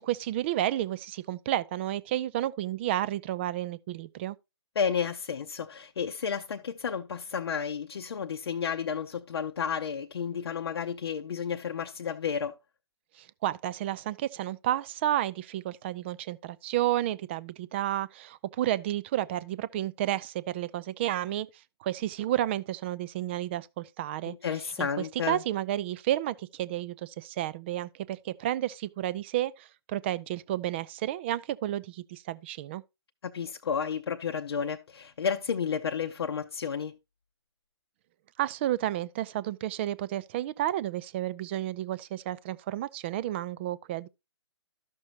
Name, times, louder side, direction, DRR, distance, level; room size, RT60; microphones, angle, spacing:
voice 1, 0.0-4.4 13.1-24.3 24.6-32.8 38.4-44.1, right 13 dB, 25° right, 0.4 m, -31 dB
voice 2, 4.8-12.5 24.3-25.4 33.2-36.9, left 7 dB, 60° left, 0.7 m, -32 dB
12.5 x 6.2 x 2.8 m
figure-of-eight pair, 135°, 15 cm